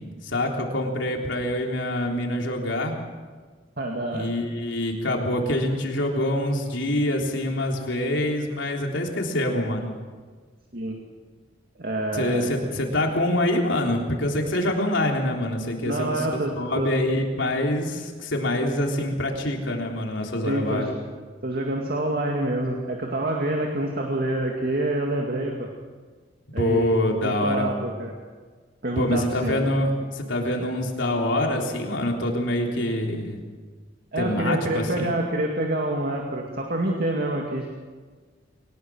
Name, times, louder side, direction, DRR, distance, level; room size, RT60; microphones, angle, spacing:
voice 1, 0.2-2.9 4.1-9.9 12.1-16.3 16.5-20.9 26.6-27.7 29.0-33.4 34.2-35.1, left 1 dB, 75° left, 1 dB, 3.6 m, -25 dB
voice 2, 3.8-4.3 10.7-11.0 11.8-12.5 15.8-16.9 20.5-20.9 21.4-25.7 26.5-26.9 27.2-28.1 28.8-29.6 34.1-37.7, right 1 dB, 50° right, 1 dB, 2.3 m, -27 dB
22.0 x 19.5 x 6.3 m, 1.5 s
head